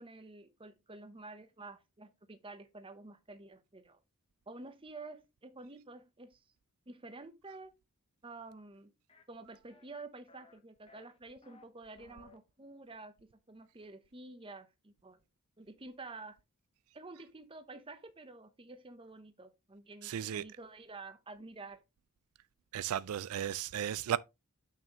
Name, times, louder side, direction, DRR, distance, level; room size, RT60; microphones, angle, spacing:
voice 1, 0.0-4.0 4.5-6.4 6.9-7.7 8.2-8.9 9.3-13.1 13.5-15.2 15.6-16.4 16.9-21.8, right 3 dB, 25° right, 0.9 m, -50 dB
sound 1, 9.1-9.2 9.7-10.0 10.3-10.6 10.9-11.6 12.0-12.4, left 3 dB, 25° left, 1.0 m, -60 dB
voice 2, 20.0-20.4 22.7-24.2, right 10 dB, 75° right, 0.3 m, -35 dB
8.8 x 6.1 x 3.0 m
head